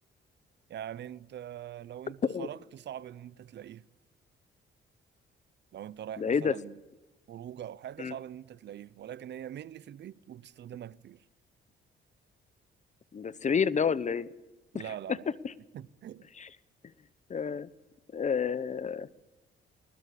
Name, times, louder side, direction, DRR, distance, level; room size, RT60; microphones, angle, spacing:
voice 1, 0.7-3.9 5.7-6.7 7.3-11.2 14.7-15.3 15.7-16.3, right 10 dB, 60° right, 0.7 m, -43 dB
voice 2, 6.2-6.5 8.0-8.1 13.1-14.3 14.7-14.8 15.4-15.5 16.4-16.5 17.3-17.7 18.1-19.1, left 6 dB, 35° left, 0.9 m, -29 dB
20.0 x 19.5 x 8.3 m
cardioid pair, 90°, 20 cm